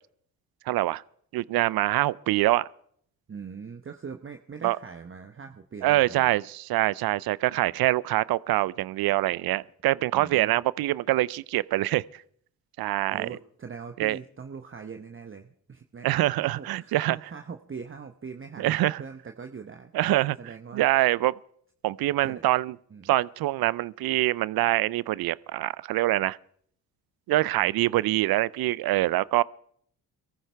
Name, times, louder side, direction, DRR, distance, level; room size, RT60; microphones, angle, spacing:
voice 1, 0.7-1.0 1.3-2.7 4.6-4.8 5.8-12.2 12.8-13.3 14.0-14.2 16.0-17.2 18.6-19.0 19.9-20.4 20.7-21.3 21.8-22.7 23.0-26.4 27.3-29.4, right 16 dB, 55° right, 0.5 m, -25 dB
voice 2, 3.3-6.3 10.1-10.6 13.1-16.1 16.4-19.9 20.4-20.9 22.2-22.4 22.9-23.1, right 6 dB, 25° right, 1.0 m, -41 dB
22.5 x 14.5 x 3.4 m
hypercardioid pair, 50°, 46 cm